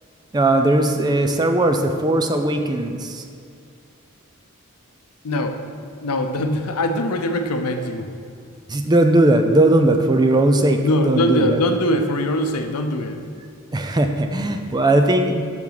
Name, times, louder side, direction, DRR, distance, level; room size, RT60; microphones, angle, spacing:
voice 1, 0.3-3.2 8.7-11.6 13.7-15.4, right 1 dB, 20° right, 6 dB, 0.4 m, -18 dB
voice 2, 5.2-5.6 6.0-8.1 10.8-13.2, left 1 dB, 85° left, 6 dB, 0.6 m, -22 dB
7.2 x 6.0 x 4.0 m, 2.4 s
head